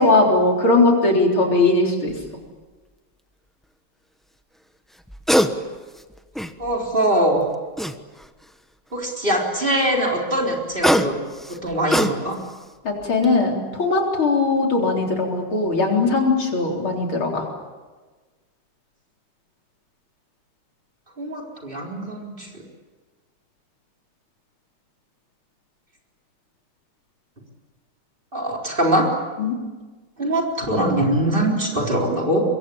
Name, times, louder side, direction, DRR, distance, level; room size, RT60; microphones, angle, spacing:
voice 1, 0.0-2.1 12.8-17.4 29.4-29.5, left 3 dB, 75° left, 1 dB, 4.6 m, -19 dB
sound 1, 2.1-2.3 5.0-5.5 5.9-6.8 7.8-8.4 10.5-12.5 13.0-13.2, equal, ahead, 0.4 m, -22 dB
voice 2, 6.6-7.4 8.9-11.2 11.5-12.4 21.2-22.5 28.3-29.1 30.2-32.4, right 1 dB, 25° right, -1 dB, 4.3 m, -22 dB
25.5 x 22.5 x 8.6 m, 1.3 s
omnidirectional pair, 2.3 m